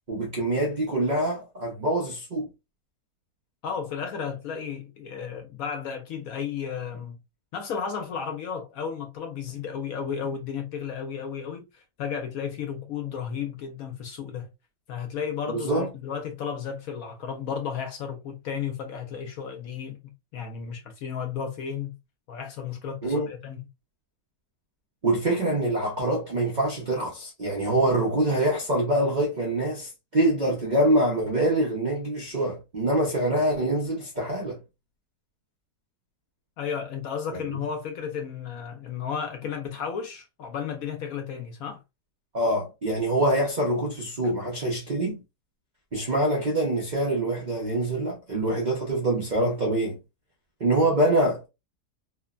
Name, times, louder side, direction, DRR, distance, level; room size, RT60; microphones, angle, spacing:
voice 1, 0.1-2.5 15.5-15.9 23.0-23.3 25.0-34.6 37.3-37.4 42.3-45.2 45.9-50.0 50.6-51.5, right 1 dB, 80° right, 0.4 m, -25 dB
voice 2, 3.6-7.2 7.5-14.5 14.9-22.0 22.3-23.7 36.6-41.8, left 7 dB, 70° left, 0.9 m, -33 dB
3.1 x 2.0 x 2.2 m
omnidirectional pair, 1.8 m